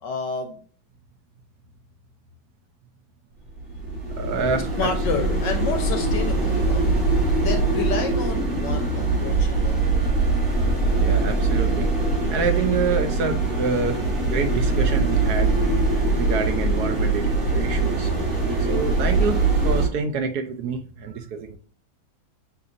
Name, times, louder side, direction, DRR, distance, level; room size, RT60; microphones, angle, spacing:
voice 1, 0.0-0.6 3.8-3.9 4.8-6.8 7.3-10.0, left 5 dB, 70° left, 4 dB, 1.2 m, -30 dB
sound 1, 3.6-19.9, right 3 dB, 35° right, 1.6 m, -22 dB
voice 2, 4.2-4.8 11.0-11.9 12.3-15.5 16.1-18.1 18.7-21.6, right 5 dB, 75° right, 6 dB, 0.9 m, -27 dB
6.8 x 2.6 x 2.6 m, 0.44 s
omnidirectional pair, 2.3 m